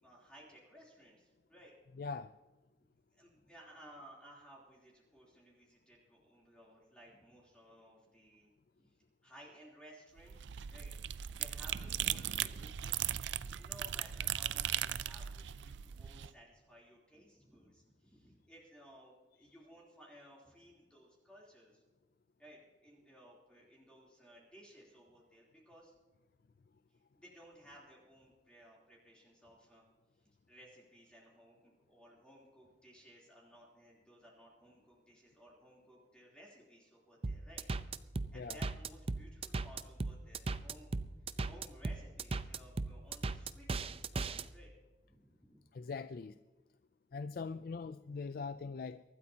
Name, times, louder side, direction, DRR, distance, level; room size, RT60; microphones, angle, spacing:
voice 1, 0.0-1.7 3.1-8.5 8.8-9.0 9.2-10.9 11.3-13.0 13.5-21.8 22.4-25.9 26.9-29.8 30.5-37.6 38.3-40.9 41.2-44.7 45.0-45.6, equal, 5° left, 3.3 m, -59 dB
voice 2, 2.0-2.3 38.3-38.6 45.7-46.4 47.1-49.0, left 4 dB, 55° left, 0.4 m, -42 dB
sound 1, 10.2-16.3, right 11 dB, 90° right, 0.4 m, -38 dB
sound 2, 37.2-44.4, right 3 dB, 35° right, 0.5 m, -37 dB
23.5 x 13.0 x 2.9 m
head